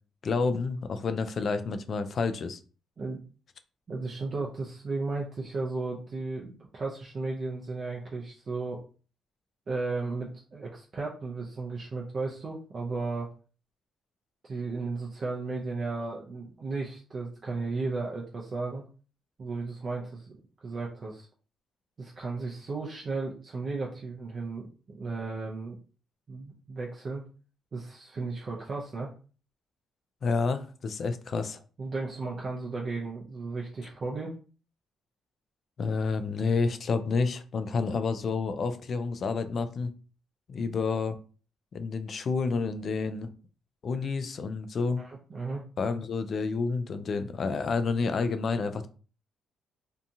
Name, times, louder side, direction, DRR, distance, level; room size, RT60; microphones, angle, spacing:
voice 1, 0.2-2.6 30.2-31.6 35.8-39.9 40.5-41.2 41.7-43.3 43.8-45.0 45.8-48.9, left 4 dB, 50° left, 0.3 m, -29 dB
voice 2, 3.9-8.8 9.7-13.3 14.4-18.8 19.4-20.4 20.6-21.3 22.0-25.8 26.3-27.2 27.7-29.1 31.8-34.3 45.0-45.6, right 3 dB, 45° right, 0.5 m, -34 dB
2.7 x 2.3 x 2.6 m
cardioid pair, 90°, 0 cm